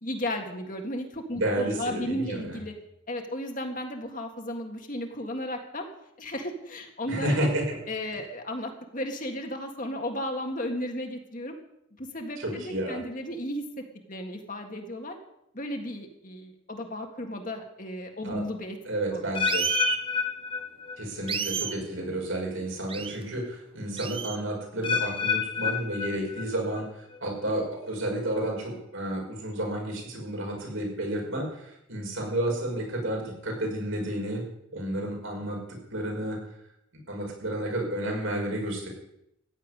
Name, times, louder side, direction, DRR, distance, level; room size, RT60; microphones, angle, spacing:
voice 1, 0.0-2.7 3.1-5.9 6.2-7.5 7.9-11.6 12.0-13.6 14.1-15.2 15.5-18.8 19.1-19.2, left 1 dB, 40° left, 3 dB, 1.8 m, -34 dB
voice 2, 1.3-2.6 7.1-7.8 12.4-13.0 18.2-18.4 18.9-19.7 21.0-34.4 34.7-35.6 35.9-36.4 37.1-38.9, right 1 dB, 70° right, -1 dB, 5.9 m, -31 dB
sound 1, 19.3-21.4 21.6-22.1 22.7-22.8 24.8-26.8 27.1-27.5 28.2-28.3, left 6 dB, 25° left, 1.4 m, -30 dB
sound 2, 19.5-20.0 21.3-21.8 22.9-23.2 24.0-24.4, right 6 dB, 25° right, 0.7 m, -30 dB
15.0 x 7.4 x 9.9 m, 0.80 s
head